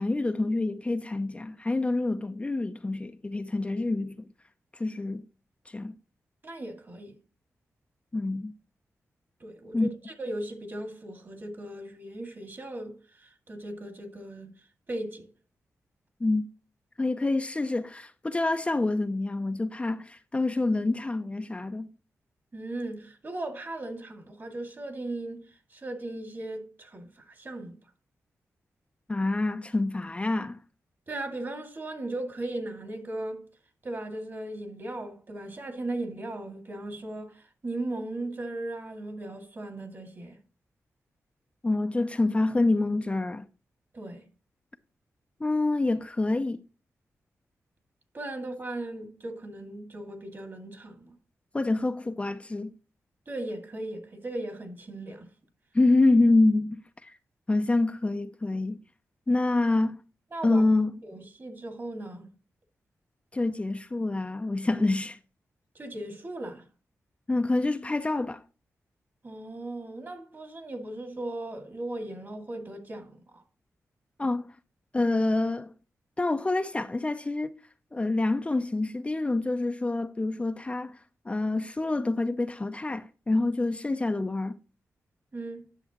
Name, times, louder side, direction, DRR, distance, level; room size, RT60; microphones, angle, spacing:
voice 1, 0.0-4.2 4.7-5.2 5.7-6.0 8.1-8.5 9.7-9.9 16.2-16.4 17.0-21.9 29.1-30.6 41.6-43.4 45.4-46.6 51.5-52.7 55.7-57.1 57.5-58.8 59.3-60.0 60.4-61.0 63.3-65.2 67.3-68.4 74.2-74.5 74.9-75.7 76.2-77.5 77.9-81.0 81.3-84.6, left 2 dB, 20° left, 0.5 m, -27 dB
voice 2, 6.4-7.1 9.4-14.6 14.9-15.3 22.5-27.8 31.1-33.5 33.8-40.4 43.9-44.3 48.1-51.1 53.3-55.3 60.3-60.6 61.0-62.3 65.7-66.6 69.2-73.4 85.3-85.7, right 2 dB, 40° right, 2.2 m, -37 dB
10.0 x 6.8 x 2.9 m
cardioid pair, 80°, 5 cm